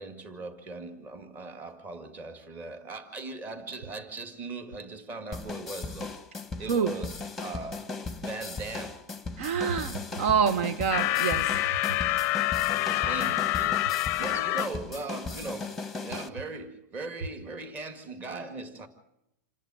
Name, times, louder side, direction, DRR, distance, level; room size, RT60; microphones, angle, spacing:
voice 1, 0.0-6.1 6.6-7.1 7.4-9.0 12.3-18.9, right 3 dB, 20° right, 2.0 m, -39 dB
sound 1, 5.3-16.3, left 4 dB, ahead, 1.3 m, -37 dB
voice 2, 6.7-7.0 9.4-11.6, right 7 dB, 50° right, 1.1 m, -27 dB
sound 2, 10.9-14.7, left 17 dB, 30° left, 0.7 m, -27 dB
27.5 x 10.5 x 9.1 m
supercardioid pair, 160°, 9 cm